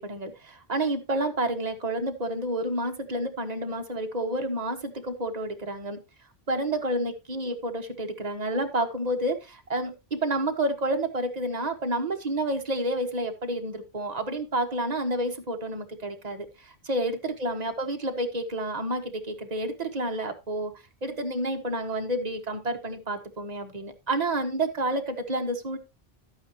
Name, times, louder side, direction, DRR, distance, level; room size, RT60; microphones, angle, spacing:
voice 1, 0.0-6.0 6.5-20.7 21.0-25.8, right 1 dB, 40° right, 4 dB, 1.5 m, -29 dB
11.5 x 8.8 x 2.9 m, 0.25 s
omnidirectional pair, 1.1 m